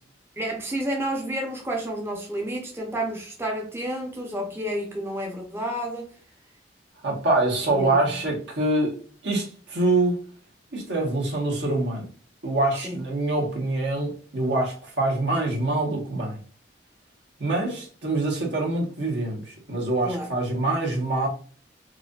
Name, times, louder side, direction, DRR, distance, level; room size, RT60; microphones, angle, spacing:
voice 1, 0.4-6.1 7.7-7.9 12.8-13.0 20.0-20.3, right 1 dB, 15° right, 0.7 m, -30 dB
voice 2, 7.0-8.9 9.2-10.2 10.7-12.0 12.4-16.4 17.4-21.3, right 2 dB, 70° right, 1.4 m, -25 dB
4.7 x 2.6 x 2.4 m
head